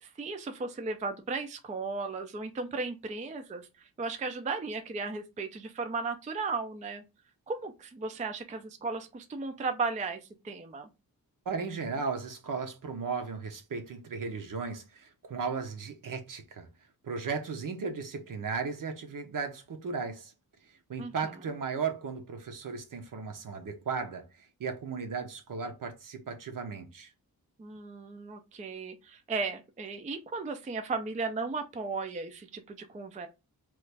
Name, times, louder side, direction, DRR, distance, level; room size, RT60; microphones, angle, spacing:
voice 1, 0.0-7.0 7.5-10.9 21.0-21.1 27.6-33.3, right 4 dB, 20° right, 0.3 m, -35 dB
voice 2, 11.5-16.7 17.0-20.3 20.9-27.1, right 5 dB, 60° right, 0.7 m, -36 dB
3.1 x 2.4 x 3.3 m
wide cardioid pair, 160°, 37 cm